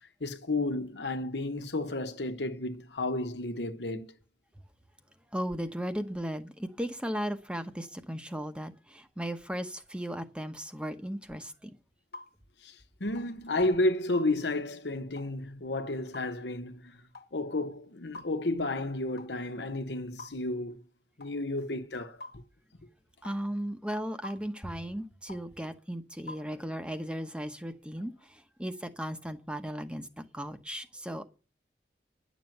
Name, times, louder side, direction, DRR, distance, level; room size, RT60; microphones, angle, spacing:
voice 1, 0.2-4.1 12.6-12.7 13.0-17.0 17.3-20.8 21.2-22.2, left 2 dB, 80° left, 1.2 m, -32 dB
voice 2, 5.3-11.7 23.2-31.3, equal, 5° right, 0.9 m, -36 dB
sound 1, 12.1-12.3 13.1-13.3 14.1-14.3 15.2-15.3 16.1-16.3 17.1-17.3 18.1-18.3 19.2-19.4 20.2-20.4 21.2-21.4 22.2-22.4 23.2-23.4 24.2-24.4 25.3-25.5 26.3-26.5, left 2 dB, 60° left, 1.5 m, -45 dB
10.5 x 7.2 x 7.8 m
head